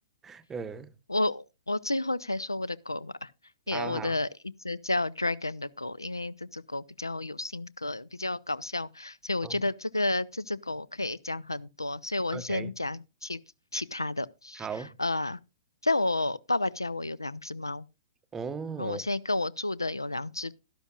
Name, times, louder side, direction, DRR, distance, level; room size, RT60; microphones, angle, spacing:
voice 1, 0.2-0.9 3.7-4.2 9.4-9.6 12.3-12.7 14.5-14.9 18.3-19.1, right 5 dB, 15° right, 0.6 m, -37 dB
voice 2, 1.1-3.3 3.7-4.3 4.6-13.4 13.7-14.7 15.0-15.4 15.8-17.9 18.8-20.5, left 2 dB, 85° left, 0.4 m, -31 dB
12.0 x 11.5 x 2.4 m
figure-of-eight pair, 115°, 2 cm